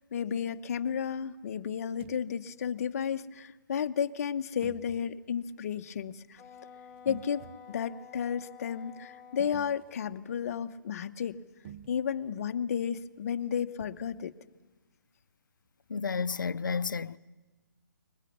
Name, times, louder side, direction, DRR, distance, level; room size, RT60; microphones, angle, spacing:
voice 1, 0.1-6.4 7.0-11.4 11.9-14.3, left 8 dB, 50° left, 0.9 m, -33 dB
sound 1, 1.9-2.3 4.6-5.1 6.9-7.8 9.4-10.0 11.6-12.1 13.8-14.2, right 10 dB, 35° right, 0.7 m, -49 dB
Wind instrument woodwind instrument, 6.4-9.8, left 7 dB, 10° left, 2.8 m, -51 dB
voice 2, 15.9-17.2, left 5 dB, 80° left, 0.6 m, -31 dB
22.0 x 21.0 x 7.2 m
hypercardioid pair, 140°, 10 cm